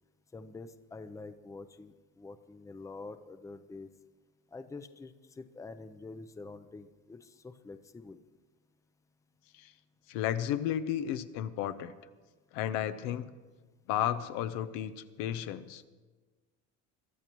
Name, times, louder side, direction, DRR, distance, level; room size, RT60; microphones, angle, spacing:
voice 1, 0.3-3.9 4.5-8.2, left 3 dB, 10° left, 10 dB, 0.6 m, -46 dB
voice 2, 10.1-11.9 12.5-13.3 13.9-15.8, left 11 dB, 80° left, 12 dB, 0.8 m, -33 dB
22.5 x 12.5 x 3.0 m, 1.4 s
supercardioid pair, 105°, 33 cm